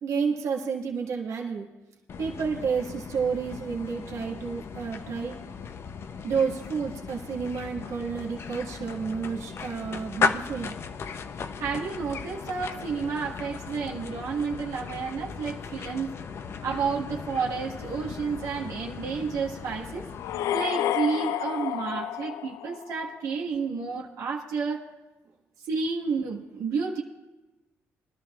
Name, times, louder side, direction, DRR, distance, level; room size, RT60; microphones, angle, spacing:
voice 1, 0.0-1.7 2.2-5.4 6.2-10.7, right 6 dB, 70° right, -1 dB, 1.6 m, -30 dB
sound 1, 2.1-20.7, left 5 dB, 50° left, 0.7 m, -36 dB
voice 2, 11.6-16.1 16.6-20.0 20.5-24.9 25.7-27.0, right 5 dB, 90° right, -2 dB, 1.6 m, -30 dB
sound 2, 20.1-23.1, left 12 dB, 85° left, 0.3 m, -30 dB
22.5 x 12.0 x 2.4 m, 1.1 s
cardioid pair, 100°, 5 cm